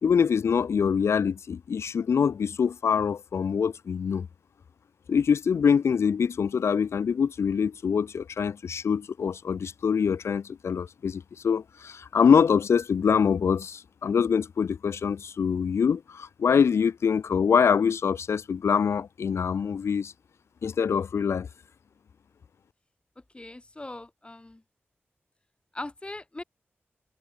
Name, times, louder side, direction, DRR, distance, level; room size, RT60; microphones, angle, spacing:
voice 1, 0.0-4.3 5.1-20.1 20.6-21.5, left 6 dB, 85° left, 0.8 m, -24 dB
voice 2, 23.2-24.6 25.7-26.4, left 2 dB, 25° left, 2.9 m, -40 dB
wide cardioid pair, 75°, 4 cm